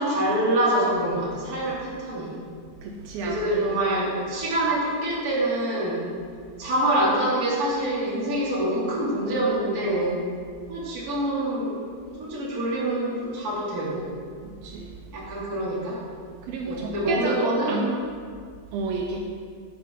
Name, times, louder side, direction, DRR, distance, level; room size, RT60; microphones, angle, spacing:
voice 1, 0.0-2.3 3.2-6.0 6.6-10.2 10.7-11.8 12.1-14.1 15.1-16.0 16.6-17.8, right 1 dB, 30° right, -6 dB, 2.0 m, -25 dB
voice 2, 2.8-3.6 14.4-15.0 16.4-18.0 18.7-19.2, right 4 dB, 90° right, 1 dB, 2.1 m, -31 dB
11.5 x 9.1 x 4.4 m, 2.1 s
omnidirectional pair, 5.2 m